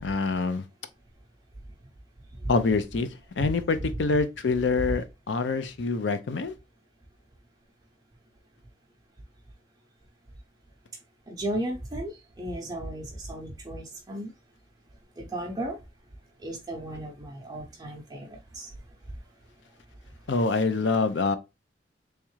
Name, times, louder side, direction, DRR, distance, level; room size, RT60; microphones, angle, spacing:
voice 1, 0.0-0.6 2.5-3.1 3.4-6.5 20.3-21.4, left 4 dB, 80° left, 0.5 m, -25 dB
voice 2, 11.3-12.1 12.4-14.3 15.2-15.7 16.4-18.3 18.5-18.7, right 1 dB, 20° right, 0.6 m, -34 dB
3.6 x 3.2 x 3.1 m
head